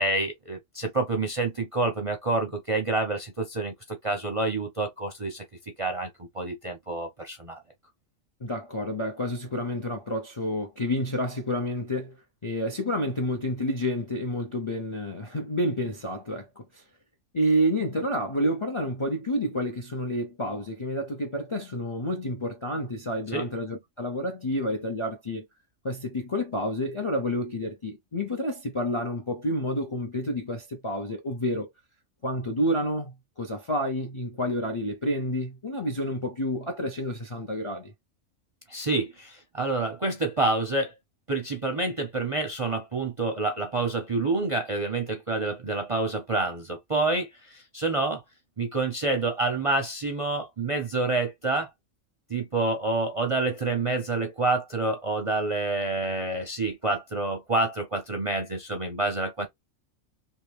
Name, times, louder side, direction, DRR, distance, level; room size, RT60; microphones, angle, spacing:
voice 1, 0.0-5.4 5.8-6.1 6.3-7.6 23.3-23.5 38.7-40.9 41.3-48.2 48.6-51.7 52.3-59.5, right 2 dB, 40° right, 0.5 m, -28 dB
voice 2, 8.4-12.2 12.4-16.8 17.3-25.4 25.8-31.7 32.2-37.9, equal, 35° left, 0.5 m, -29 dB
2.9 x 2.8 x 3.3 m
omnidirectional pair, 1.4 m